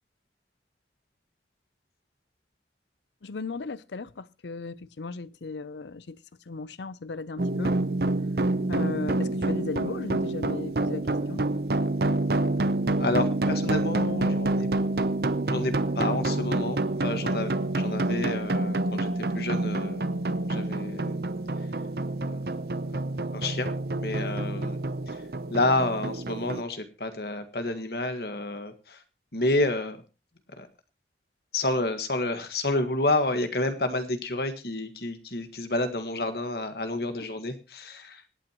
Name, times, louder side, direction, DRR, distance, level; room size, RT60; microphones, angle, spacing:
voice 1, 3.2-6.2 6.5-7.8 8.7-11.5 37.2-37.3, left 3 dB, 75° left, 0.6 m, -36 dB
sound 1, 7.4-26.6, right 2 dB, 55° right, 0.7 m, -28 dB
voice 2, 13.0-14.7 15.5-20.1 20.5-21.2 22.2-22.4 23.3-24.8 25.1-25.2 25.5-29.0 29.3-30.0 30.6-30.7 31.5-38.2, left 2 dB, 60° left, 1.7 m, -29 dB
25.5 x 8.9 x 3.0 m
head